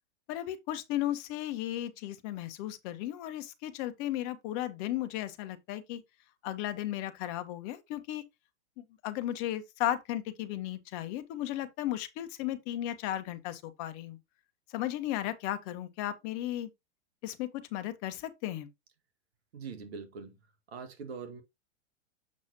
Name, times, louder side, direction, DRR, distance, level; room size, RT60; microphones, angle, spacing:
voice 1, 0.3-6.0 6.4-8.2 8.8-14.2 14.7-16.7 17.2-18.7, left 13 dB, 40° left, 1.2 m, -35 dB
voice 2, 19.5-20.4 20.7-21.4, right 5 dB, 65° right, 2.0 m, -42 dB
7.4 x 6.1 x 2.9 m
figure-of-eight pair, 105°, 35 cm